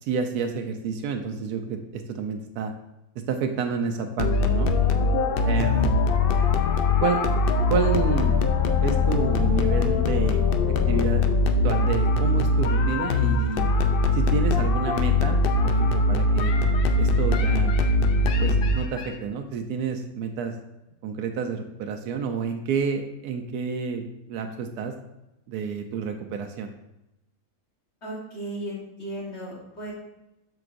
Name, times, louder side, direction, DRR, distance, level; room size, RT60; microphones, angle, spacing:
voice 1, 0.0-2.7 3.3-4.7 5.4-5.9 7.0-7.3 7.7-8.4 8.8-11.2 11.6-13.7 14.1-16.5 17.0-17.7 18.4-20.5 21.0-24.0 24.3-24.9 25.5-26.7, right 5 dB, 90° right, 5 dB, 1.1 m, -29 dB
sound 1, 4.2-19.1, left 3 dB, 75° left, 0.5 m, -22 dB
voice 2, 5.7-6.7 28.0-29.9, right 1 dB, 50° left, -4 dB, 1.5 m, -37 dB
7.8 x 6.1 x 2.5 m, 0.91 s
omnidirectional pair, 1.6 m